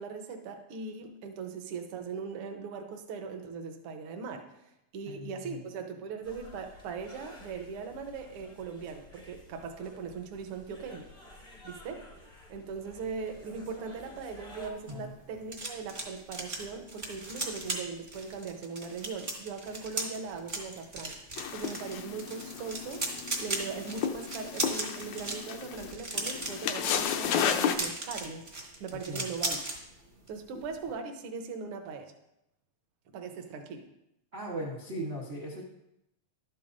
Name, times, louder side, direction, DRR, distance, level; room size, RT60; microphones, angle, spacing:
voice 1, 0.0-4.5 4.9-11.1 11.6-28.5 28.8-29.6 30.3-32.1 33.1-33.9, right 5 dB, 65° right, 4 dB, 1.5 m, -40 dB
voice 2, 5.0-5.6 14.9-15.1 29.1-29.3 34.3-35.6, equal, 85° right, -3 dB, 0.5 m, -38 dB
sound 1, 6.2-14.7, left 1 dB, 55° left, 0.5 m, -51 dB
sound 2, 14.6-29.8 30.1-30.4 30.6-30.9, right 2 dB, 35° right, 0.7 m, -38 dB
sound 3, 21.4-27.8, left 8 dB, 80° left, 2.0 m, -33 dB
12.0 x 8.9 x 2.6 m, 0.84 s
omnidirectional pair, 3.3 m